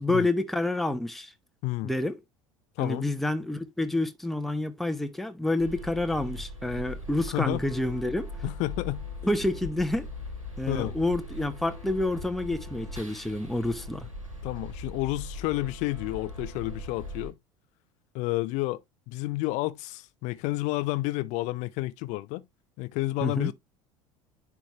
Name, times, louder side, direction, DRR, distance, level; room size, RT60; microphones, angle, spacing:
voice 1, 0.0-1.3 1.8-2.2 2.8-8.3 9.2-10.1 10.6-14.1 23.2-23.5, left 2 dB, ahead, 0.8 m, -28 dB
voice 2, 2.8-3.1 7.3-7.6 8.4-9.0 10.7-11.0 14.4-17.4 18.1-18.8 19.1-22.4 22.8-23.5, left 19 dB, 45° left, 0.5 m, -30 dB
sound 1, 5.6-17.3, left 1 dB, 90° right, 1.8 m, -40 dB
10.0 x 3.5 x 3.0 m
figure-of-eight pair, 70°, 17 cm